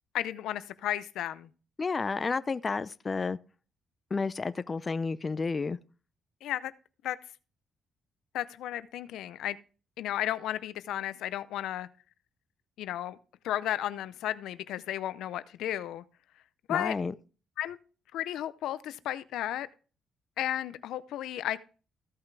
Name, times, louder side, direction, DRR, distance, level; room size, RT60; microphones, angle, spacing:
voice 1, 0.1-1.5 6.4-6.7 7.0-7.2 8.3-9.6 10.0-11.9 12.8-13.2 13.4-16.0 16.7-16.9 17.6-17.8 18.1-19.7 20.4-21.6, left 12 dB, 85° left, 0.5 m, -33 dB
voice 2, 1.8-3.4 4.1-5.8 16.7-17.1, left 4 dB, 30° left, 0.5 m, -31 dB
15.0 x 5.7 x 3.4 m
cardioid pair, 90°, 0 cm